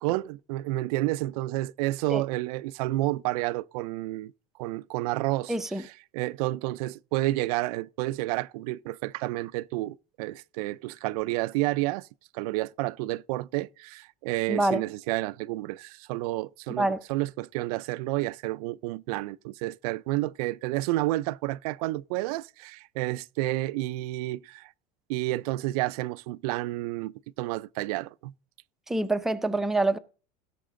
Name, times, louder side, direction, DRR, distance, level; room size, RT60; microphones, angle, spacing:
voice 1, 0.0-4.3 4.6-5.5 6.1-12.1 12.3-24.7 25.1-28.3, right 18 dB, 85° right, 0.4 m, -30 dB
voice 2, 5.5-5.8 14.5-14.8 16.8-17.0 28.9-30.0, right 2 dB, ahead, 0.5 m, -26 dB
17.0 x 6.6 x 3.7 m
cardioid pair, 160°, 19 cm